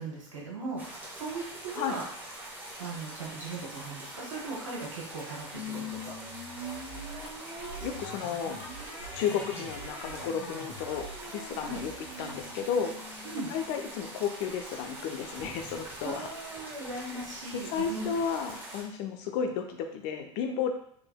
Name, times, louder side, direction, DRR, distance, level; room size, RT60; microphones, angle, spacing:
voice 1, 0.0-2.0 2.8-6.1 11.6-11.8 13.2-13.5 16.0-18.1, right 3 dB, 90° right, -4 dB, 1.3 m, -38 dB
sound 1, 0.8-18.8, right 1 dB, 10° right, 1.1 m, -44 dB
sound 2, 5.5-14.3, left 1 dB, 80° left, 1.1 m, -43 dB
voice 2, 7.8-8.6 9.1-11.9 12.2-12.9 13.5-16.3 17.5-20.7, left 7 dB, 60° left, 5 dB, 0.6 m, -33 dB
3.5 x 3.2 x 2.2 m, 0.64 s
hypercardioid pair, 85°, 16 cm